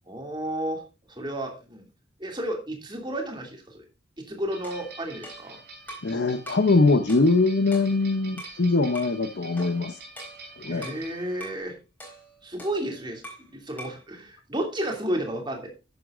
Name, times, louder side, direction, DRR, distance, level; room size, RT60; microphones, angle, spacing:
voice 1, 0.1-0.8 1.1-1.8 2.2-3.8 4.2-5.6 10.7-11.8 12.4-15.7, right 1 dB, 25° right, 2.6 m, -32 dB
sound 1, 4.5-11.6, right 3 dB, 60° right, 4.7 m, -46 dB
sound 2, 4.6-6.2 6.5-6.7 7.1-8.6 8.9-9.2 9.6-11.1 11.4-11.6 12.0-13.5 13.8-14.1, right 1 dB, 10° left, 4.3 m, -44 dB
voice 2, 6.0-10.0 10.6-10.9, left 3 dB, 60° left, 0.7 m, -22 dB
11.5 x 9.7 x 2.5 m
head